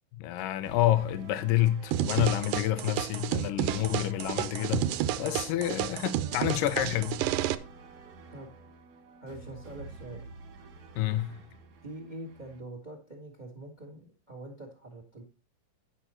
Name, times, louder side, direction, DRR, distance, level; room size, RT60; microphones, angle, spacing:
voice 1, 0.2-4.9 5.2-7.2 11.0-11.4, left 13 dB, 80° left, 2.4 m, -28 dB
sound 1, 0.6-12.6, right 3 dB, 55° right, 2.6 m, -49 dB
sound 2, 1.9-7.6, right 12 dB, 85° right, 2.3 m, -31 dB
voice 2, 9.2-10.2 11.8-15.2, right 1 dB, 20° right, 1.2 m, -44 dB
11.0 x 5.7 x 4.3 m
omnidirectional pair, 3.9 m